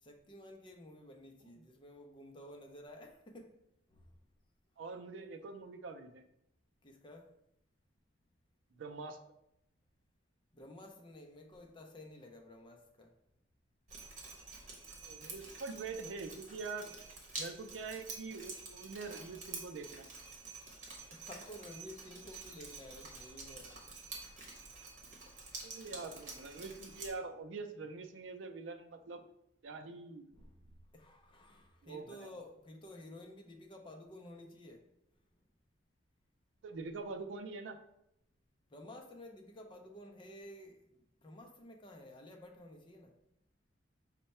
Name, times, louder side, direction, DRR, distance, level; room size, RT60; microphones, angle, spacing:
voice 1, 0.0-3.6 3.9-4.2 6.8-7.3 10.5-13.1 21.1-23.8 30.3-34.9 38.7-43.2, left 1 dB, 25° left, 0.5 m, -53 dB
voice 2, 4.8-6.2 8.8-9.2 15.0-16.9 17.4-20.1 25.6-29.2 29.6-30.3 31.8-32.3 36.6-37.8, right 4 dB, 70° right, 0.4 m, -44 dB
Drip, 13.9-27.1, right 3 dB, 40° right, 1.1 m, -48 dB
5.4 x 2.2 x 4.2 m
head